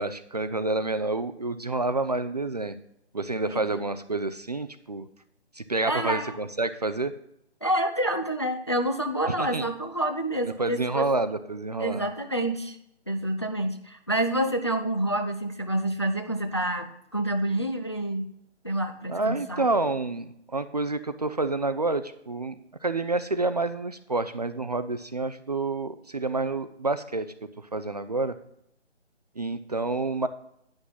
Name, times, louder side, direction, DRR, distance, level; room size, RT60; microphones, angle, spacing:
voice 1, 0.0-2.8 3.1-5.1 5.5-7.1 9.4-9.7 10.6-12.0 19.1-27.3 27.7-28.3 29.4-30.3, right 3 dB, 40° right, 12 dB, 0.4 m, -28 dB
voice 2, 5.9-6.4 7.6-11.1 11.8-12.8 13.1-18.3 18.6-19.7, right 1 dB, 25° left, 7 dB, 0.4 m, -28 dB
9.7 x 6.1 x 5.6 m, 0.76 s
figure-of-eight pair, 155°, 34 cm